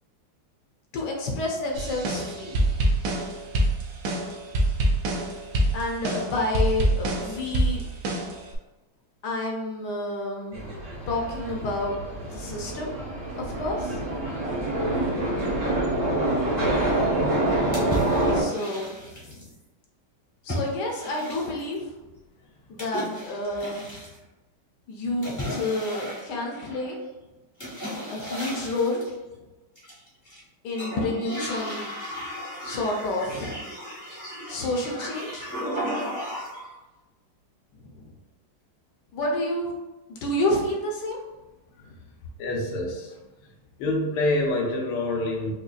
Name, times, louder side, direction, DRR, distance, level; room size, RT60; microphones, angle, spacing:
voice 1, 0.9-2.6 5.7-7.8 9.2-10.6 11.1-12.0 12.3-12.9 13.4-14.0 18.3-19.5 20.4-21.9 22.7-24.0 24.9-27.0 28.1-29.0 30.6-31.9 32.6-33.5 34.5-35.5 37.8-38.0 39.1-39.7 40.1-41.2 41.9-42.0, left 2 dB, 70° left, -1 dB, 1.0 m, -29 dB
sound 1, 1.7-8.6, right 1 dB, 70° right, 1.1 m, -25 dB
sound 2, 10.5-18.4, right 1 dB, 40° right, 0.8 m, -26 dB
sound 3, 17.7-19.5 20.5-21.8 22.8-24.2 25.2-26.9 27.6-29.1 29.7-30.4 30.7-36.7, equal, 15° left, 0.5 m, -35 dB
voice 2, 42.4-43.1 43.8-45.5, left 2 dB, 90° left, -1 dB, 1.6 m, -26 dB
5.1 x 2.3 x 2.4 m, 1.1 s
omnidirectional pair, 2.3 m